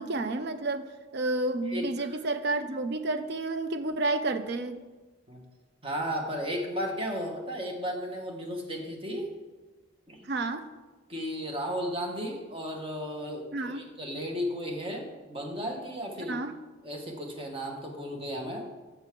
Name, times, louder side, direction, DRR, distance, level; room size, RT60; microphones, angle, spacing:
voice 1, 0.0-4.8 10.2-10.7 13.5-13.9 16.3-16.5, right 2 dB, 55° right, 9 dB, 0.5 m, -30 dB
voice 2, 1.7-2.1 5.3-5.4 5.8-9.3 10.1-10.2 11.1-16.4 16.8-18.7, equal, 25° right, 1 dB, 1.1 m, -34 dB
6.9 x 5.4 x 5.9 m, 1.2 s
head